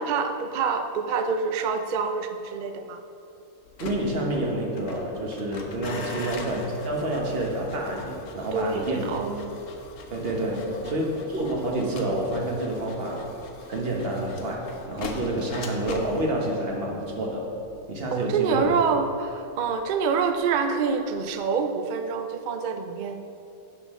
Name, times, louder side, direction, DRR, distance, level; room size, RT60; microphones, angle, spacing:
voice 1, 0.0-3.0 6.1-6.4 8.5-9.6 10.5-11.0 18.1-23.2, right 5 dB, 85° right, 7 dB, 0.4 m, -27 dB
sound 1, 3.6-20.6 20.9-21.3, left 3 dB, 65° left, 1.1 m, -42 dB
voice 2, 3.8-9.0 10.1-13.3 13.7-17.5 17.9-18.6, right 1 dB, 45° right, -1 dB, 1.3 m, -28 dB
9.7 x 6.3 x 3.6 m, 2.7 s
omnidirectional pair, 1.5 m